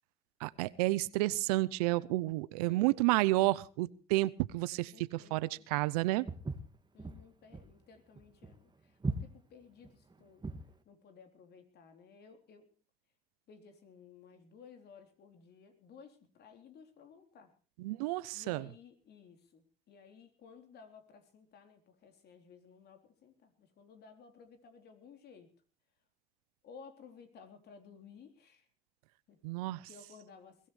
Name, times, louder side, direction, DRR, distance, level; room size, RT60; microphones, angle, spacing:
voice 1, 0.4-6.3 17.8-18.6 29.4-29.8, right 19 dB, 80° right, 20 dB, 0.7 m, -31 dB
voice 2, 4.9-5.7 6.9-10.4 10.9-12.7 13.5-17.5 18.3-25.5 26.6-28.7 29.3-29.4 29.9-30.7, left 6 dB, 60° left, 6 dB, 3.8 m, -56 dB
Walk footsteps, 6.3-10.7, right 3 dB, 20° right, 2.2 m, -39 dB
22.0 x 17.0 x 3.2 m, 0.37 s
hypercardioid pair, 65°, 19 cm